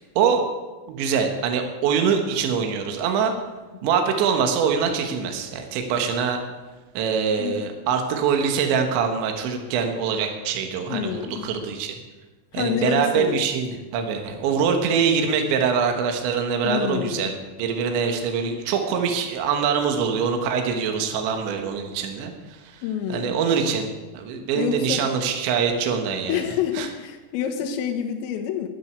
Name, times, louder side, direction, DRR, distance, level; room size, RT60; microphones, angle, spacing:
voice 1, 0.9-3.3 3.8-6.4 6.9-12.0 12.5-22.8 23.1-26.4 26.7-26.9, right 6 dB, 70° right, 4 dB, 3.4 m, -24 dB
voice 2, 10.9-11.5 12.5-13.4 16.6-17.3 22.8-23.4 24.6-25.1 26.3-28.7, left 9 dB, 80° left, 2 dB, 3.6 m, -27 dB
12.0 x 10.5 x 8.1 m, 1.2 s
omnidirectional pair, 5.9 m